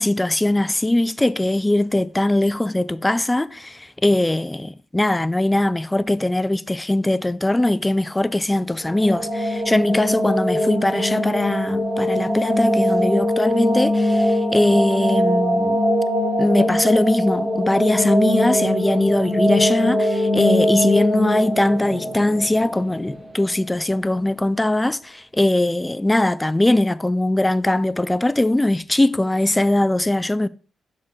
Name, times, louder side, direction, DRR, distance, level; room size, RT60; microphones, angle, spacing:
voice 1, 0.0-15.8 16.4-30.5, left 1 dB, 15° left, 0.4 m, -20 dB
sound 1, 8.8-23.6, equal, 20° right, 3.2 m, -22 dB
6.5 x 3.7 x 4.4 m
supercardioid pair, 45°, 0 cm